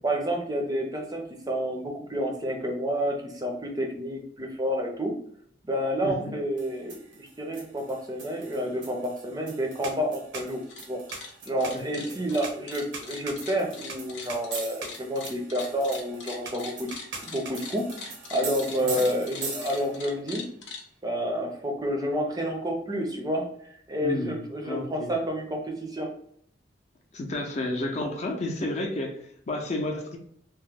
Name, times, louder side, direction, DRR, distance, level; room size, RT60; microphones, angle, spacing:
voice 1, 0.0-5.1 5.6-10.6 10.9-11.0 11.5-16.9 17.2-17.9 18.3-20.5 21.0-26.1, equal, 20° right, 2 dB, 0.5 m, -29 dB
voice 2, 6.0-6.3 11.7-12.1 18.8-19.1 24.0-25.2 27.1-30.2, left 1 dB, 40° left, 2 dB, 0.5 m, -31 dB
sound 1, 6.6-20.1, right 4 dB, 75° right, 0.8 m, -41 dB
sound 2, 10.5-10.8 11.1-20.8, left 5 dB, 80° left, 0.7 m, -41 dB
2.9 x 2.0 x 3.4 m, 0.66 s
head